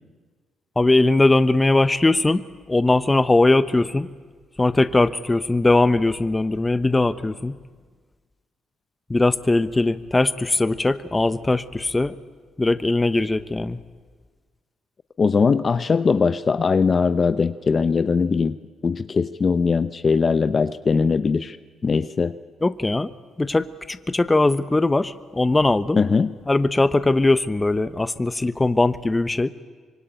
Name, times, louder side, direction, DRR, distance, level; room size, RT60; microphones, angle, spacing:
voice 1, 0.8-4.1 4.6-7.5 9.1-12.1 12.6-13.8 22.6-23.1 23.4-26.0 26.5-29.5, left 2 dB, 15° left, 14 dB, 1.0 m, -20 dB
voice 2, 15.2-18.6 18.8-21.6 21.8-22.3 26.0-26.3, left 5 dB, 40° left, 12 dB, 0.7 m, -20 dB
25.0 x 23.5 x 9.2 m, 1.5 s
cardioid pair, 90°, 0 cm